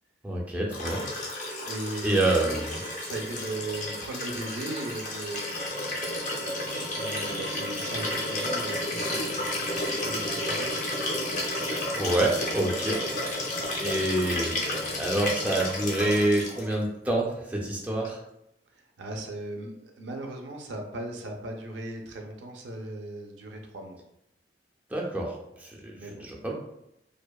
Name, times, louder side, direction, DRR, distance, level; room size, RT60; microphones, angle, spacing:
voice 1, 0.2-1.0 2.0-2.8 12.0-13.0 13.7-18.2 24.9-26.5, right 1 dB, 10° right, -2 dB, 0.4 m, -27 dB
Liquid, 0.7-16.8 18.0-18.1, left 1 dB, 45° left, 0.5 m, -32 dB
voice 2, 1.6-5.6 6.9-10.8 18.7-24.0 25.9-26.2, right 2 dB, 85° right, 2 dB, 0.4 m, -38 dB
2.6 x 2.1 x 2.2 m, 0.81 s
head